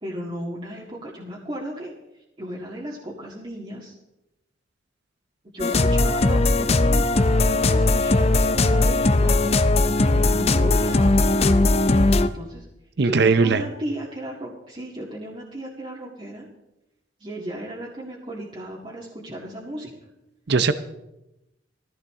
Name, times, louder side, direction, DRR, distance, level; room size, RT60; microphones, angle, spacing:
voice 1, 0.0-1.9 2.4-4.0 5.5-9.4 10.1-11.1 12.2-12.7 13.0-16.5 17.2-19.9, equal, 25° right, -5 dB, 2.0 m, -35 dB
sound 1, 5.6-12.3, left 2 dB, 35° left, 0.6 m, -19 dB
voice 2, 13.0-13.6 20.5-20.7, right 4 dB, 60° right, 11 dB, 0.7 m, -18 dB
16.0 x 15.0 x 3.8 m, 0.93 s
head